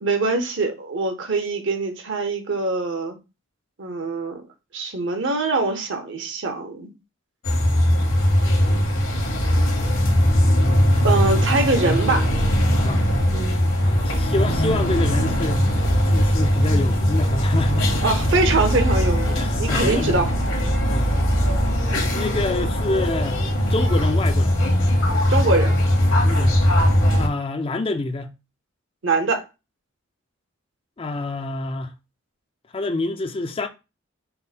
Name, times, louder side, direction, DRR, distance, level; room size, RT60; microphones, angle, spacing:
voice 1, 0.0-3.2 3.8-4.4 4.7-6.9 11.0-12.3 18.0-20.3 25.3-25.8 29.0-29.4, right 3 dB, 60° right, 0.9 m, -23 dB
sound 1, 7.4-27.3, equal, 75° left, 1.4 m, -20 dB
voice 2, 13.8-18.0 19.3-20.3 20.9-21.1 22.1-23.4 23.7-24.6 26.2-26.6 27.2-28.3 31.0-31.9 32.7-33.7, left 2 dB, 25° left, 0.4 m, -27 dB
5.3 x 2.2 x 4.2 m
head